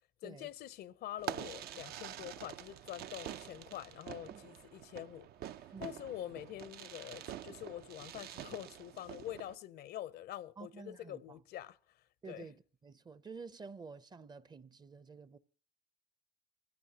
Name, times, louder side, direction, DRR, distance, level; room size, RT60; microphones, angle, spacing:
voice 1, 0.2-5.3 5.8-11.8 12.3-12.5, left 12 dB, 70° left, 0.6 m, -45 dB
Fireworks, 1.2-9.5, right 10 dB, 65° right, 0.6 m, -47 dB
voice 2, 5.7-6.0 10.6-11.4 12.2-15.4, right 4 dB, 25° right, 0.6 m, -50 dB
23.5 x 15.5 x 2.8 m
cardioid pair, 110°, 17 cm